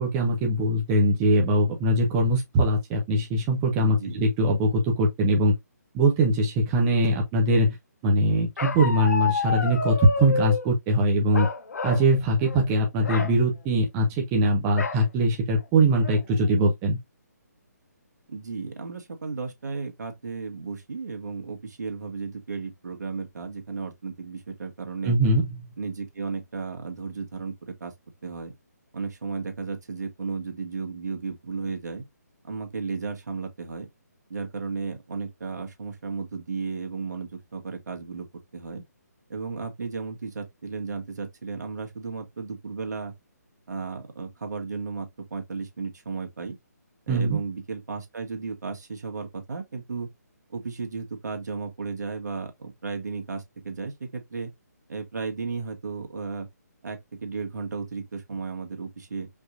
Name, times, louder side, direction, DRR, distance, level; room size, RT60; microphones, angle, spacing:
voice 1, 0.0-5.5 5.9-7.8 8.0-11.5 11.8-17.0 25.0-25.5 47.1-47.4, right 1 dB, 20° right, 0.9 m, -22 dB
voice 2, 3.8-4.2 18.3-25.2 25.8-27.9 28.2-28.5 28.9-32.0 32.4-33.9 34.3-38.3 38.5-38.8 39.3-43.1 43.7-46.6 47.1-50.1 50.5-54.5 54.9-56.5 56.8-59.3, right 4 dB, 75° right, 1.7 m, -34 dB
Bark, 8.6-10.7 11.3-12.1 12.4-12.6 13.0-13.3 14.8-15.0 15.6-15.7 16.0-16.4, left 4 dB, 65° left, 0.9 m, -29 dB
5.1 x 3.0 x 2.5 m
hypercardioid pair, 160°, 9 cm